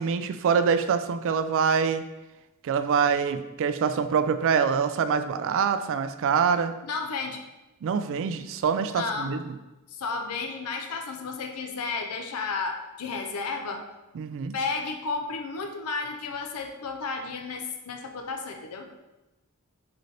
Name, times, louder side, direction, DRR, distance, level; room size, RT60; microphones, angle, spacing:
voice 1, 0.0-2.0 2.6-6.7 7.8-9.5 14.1-14.5, right 6 dB, 60° right, 10 dB, 0.3 m, -25 dB
voice 2, 6.8-7.4 8.9-9.4 9.9-13.9 14.5-18.9, left 4 dB, 80° left, 4 dB, 0.5 m, -32 dB
3.9 x 3.2 x 4.0 m, 1.0 s
head